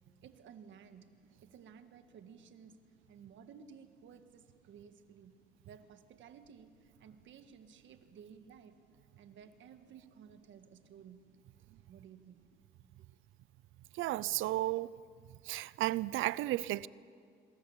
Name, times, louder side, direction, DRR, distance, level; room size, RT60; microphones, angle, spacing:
voice 1, 0.2-2.8 3.1-5.4 5.6-8.8 9.2-11.3 11.9-12.4 13.0-13.1, right 7 dB, 70° right, 1.7 m, -56 dB
voice 2, 13.9-14.9 15.4-16.9, right 16 dB, 90° right, 0.5 m, -33 dB
26.0 x 21.5 x 7.3 m
cardioid pair, 90°, 20 cm